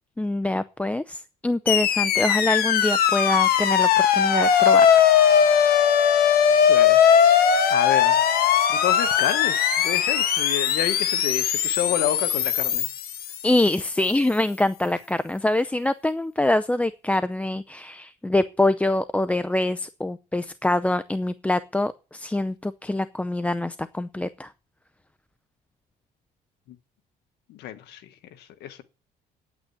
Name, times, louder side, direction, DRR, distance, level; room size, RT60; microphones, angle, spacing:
voice 1, 0.2-5.0 13.4-24.5, left 1 dB, 10° left, 0.5 m, -25 dB
sound 1, 1.7-13.9, left 8 dB, 65° left, 1.6 m, -19 dB
voice 2, 6.7-8.2 8.7-12.9 26.7-26.8 27.5-28.8, left 11 dB, 80° left, 1.6 m, -30 dB
9.7 x 9.0 x 8.6 m
cardioid pair, 110°, 17 cm